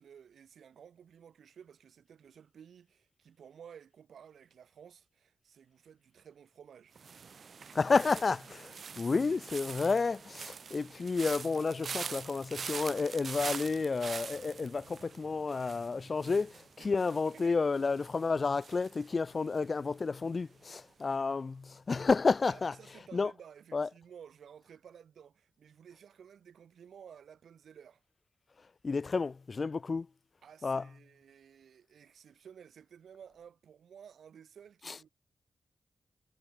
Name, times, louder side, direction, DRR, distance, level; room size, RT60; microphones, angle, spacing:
voice 1, 0.0-6.9 8.9-9.4 16.8-16.9 17.3-17.6 21.0-21.2 22.5-28.0 30.4-35.1, right 8 dB, 80° right, 4.2 m, -55 dB
sound 1, 7.0-20.0 20.3-20.7, right 6 dB, 65° right, 1.7 m, -44 dB
voice 2, 7.7-22.8 23.1-23.3 23.7-23.9 28.8-30.1 30.6-30.9 34.8-35.0, left 4 dB, 50° left, 0.8 m, -31 dB
cardioid pair, 60°, 0 cm